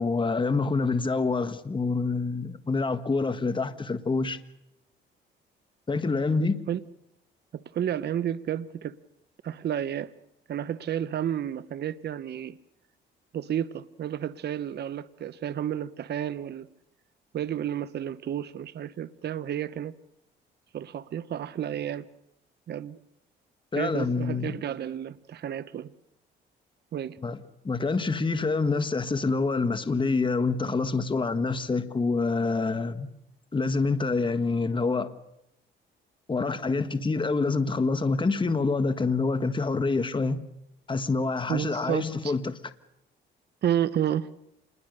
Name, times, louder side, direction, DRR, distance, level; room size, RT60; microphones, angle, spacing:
voice 1, 0.0-4.4 5.9-6.6 23.7-24.6 27.2-33.1 33.5-35.1 36.3-40.4 40.9-42.6, left 3 dB, 25° left, 1.5 m, -26 dB
voice 2, 7.5-8.9 9.4-10.1 10.5-12.6 13.3-16.7 17.3-19.9 20.7-22.1 22.7-23.0 23.8-25.9 26.9-27.2 41.5-42.3 43.6-44.3, right 10 dB, 55° right, 0.9 m, -31 dB
27.5 x 21.0 x 6.6 m
cardioid pair, 90°, 20 cm